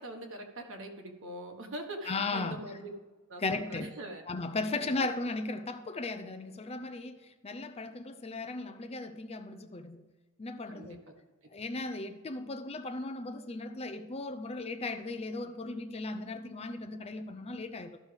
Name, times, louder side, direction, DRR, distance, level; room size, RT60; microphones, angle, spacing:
voice 1, 0.0-2.9 3.3-4.2 4.7-5.1 10.7-11.0, right 1 dB, 60° right, 1.5 m, -43 dB
voice 2, 2.1-2.6 3.4-3.9 4.3-7.2 7.4-10.0 10.4-11.0 11.5-18.0, left 3 dB, 30° left, 0.5 m, -36 dB
13.5 x 6.4 x 3.4 m
head